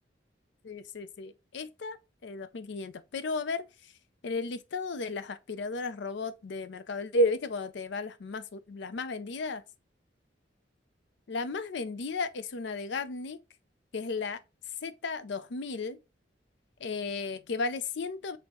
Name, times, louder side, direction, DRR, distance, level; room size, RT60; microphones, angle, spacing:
voice 1, 0.6-3.9 4.2-9.6 11.3-13.4 13.9-14.4 14.8-16.0 16.8-18.4, left 2 dB, 70° left, 0.5 m, -34 dB
6.2 x 2.8 x 3.0 m
head